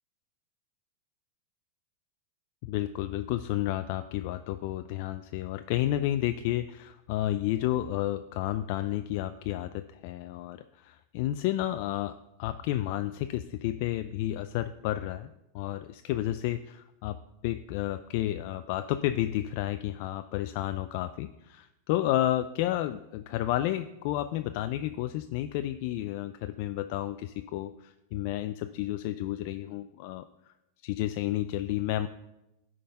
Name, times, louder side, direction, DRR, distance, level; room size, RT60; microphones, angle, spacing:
voice 1, 2.6-15.3 15.5-17.2 17.4-30.3 30.8-32.1, left 14 dB, 60° left, 10 dB, 0.3 m, -31 dB
10.0 x 3.7 x 5.4 m, 0.91 s
hypercardioid pair, 120°, 0 cm